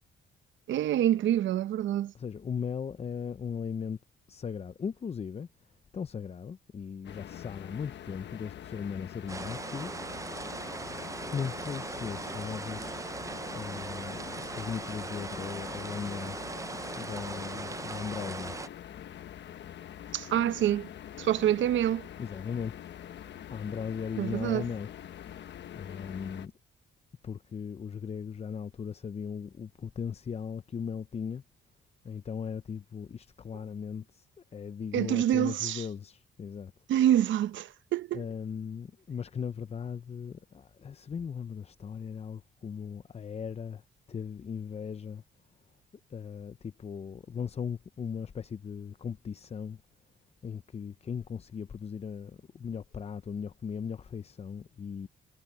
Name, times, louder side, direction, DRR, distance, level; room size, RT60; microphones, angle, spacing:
voice 1, 0.7-2.1 20.1-20.9 21.2-22.1 24.2-24.6 34.9-35.8 36.9-38.2, right 11 dB, 70° right, 0.8 m, -26 dB
voice 2, 2.1-4.0 4.3-5.5 5.9-10.4 11.3-16.4 17.0-18.6 22.2-22.7 23.5-24.9 25.7-26.5 27.2-31.4 32.0-34.3 34.5-36.7 38.1-43.8 44.1-45.2 46.1-49.8 50.4-55.1, left 7 dB, 30° left, 0.6 m, -38 dB
sound 1, 7.0-26.5, left 10 dB, 65° left, 1.1 m, -45 dB
sound 2, 9.3-18.7, right 3 dB, 15° right, 0.5 m, -39 dB
cardioid pair, 90°, 20 cm